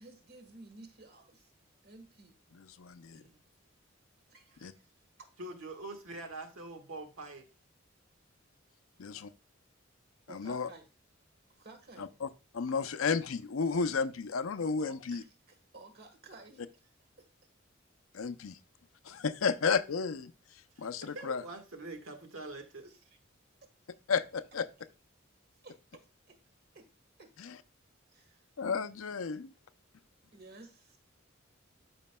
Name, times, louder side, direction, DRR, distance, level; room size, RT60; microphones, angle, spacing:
voice 1, 0.0-1.5 1.8-2.4 4.3-4.9 5.2-5.3 10.3-10.9 11.6-12.2 14.8-16.9 17.2-17.3 21.0-21.2 22.8-23.2 25.6-26.0 26.3-26.4 26.7-26.9 27.2-27.3 28.1-28.5 30.3-31.0, right 2 dB, 50° right, 1.4 m, -54 dB
voice 2, 2.5-3.2 4.6-4.7 9.0-9.2 10.3-10.7 12.0-12.3 12.5-15.2 18.1-18.6 19.0-20.3 20.8-21.4 24.1-24.7 27.4-27.5 28.6-29.5, left 5 dB, 85° left, 0.6 m, -32 dB
voice 3, 5.4-7.4 20.8-20.9 21.1-22.9, right 2 dB, 80° right, 1.6 m, -44 dB
12.5 x 5.1 x 2.2 m
head